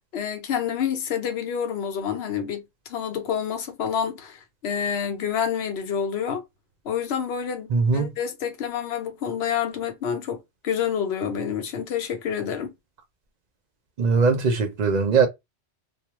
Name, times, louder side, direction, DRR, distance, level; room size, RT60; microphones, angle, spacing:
voice 1, 0.1-2.6 2.9-6.4 6.8-12.7, left 8 dB, 65° left, 0.9 m, -28 dB
voice 2, 7.7-8.1 14.0-15.3, right 5 dB, 50° right, 0.5 m, -20 dB
2.3 x 2.0 x 2.9 m
omnidirectional pair, 1.2 m